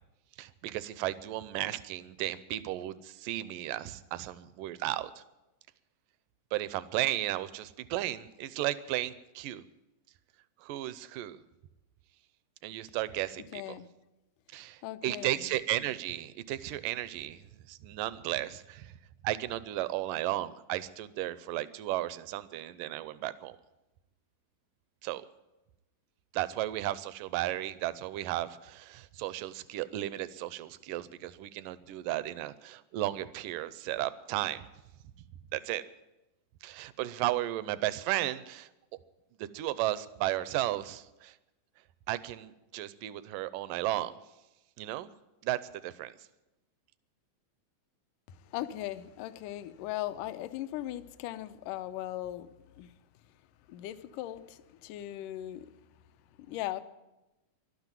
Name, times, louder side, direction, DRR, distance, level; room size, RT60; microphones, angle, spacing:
voice 1, 0.4-5.2 6.5-9.6 10.6-11.4 12.6-13.8 14.5-18.9 19.2-23.6 25.0-25.3 26.3-34.7 35.5-35.8 36.6-38.7 39.4-41.4 42.1-44.2 44.8-45.1 45.4-46.1, right 15 dB, 80° right, 2.1 m, -34 dB
voice 2, 13.5-13.9 14.8-15.5 48.4-52.5 52.8-52.9 53.7-55.7 56.4-56.8, left 14 dB, 75° left, 2.1 m, -38 dB
12.0 x 12.0 x 9.1 m
omnidirectional pair, 4.1 m